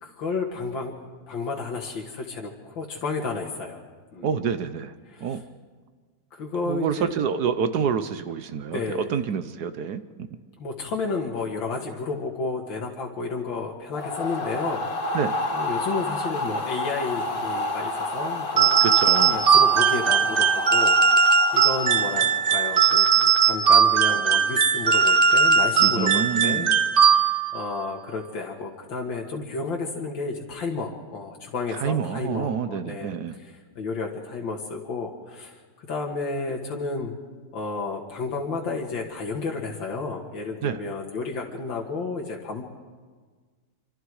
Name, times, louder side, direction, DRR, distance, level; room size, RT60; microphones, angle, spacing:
voice 1, 0.0-0.9 1.3-3.8 4.1-4.4 5.1-5.4 6.3-7.2 8.7-9.1 10.6-15.2 15.5-18.9 19.2-26.7 27.1-37.1 37.5-42.6, left 4 dB, 90° left, -1 dB, 2.4 m, -32 dB
voice 2, 4.2-4.9 5.2-5.4 6.7-10.0 15.1-15.4 18.8-19.4 25.8-26.7 31.8-33.3 40.6-40.8, right 7 dB, 65° right, 11 dB, 1.3 m, -27 dB
sound 1, 13.9-23.0, left 2 dB, 50° left, 2.0 m, -30 dB
sound 2, 18.6-27.6, right 6 dB, 40° right, 0.8 m, -19 dB
26.0 x 25.0 x 4.8 m, 1.5 s
omnidirectional pair, 2.0 m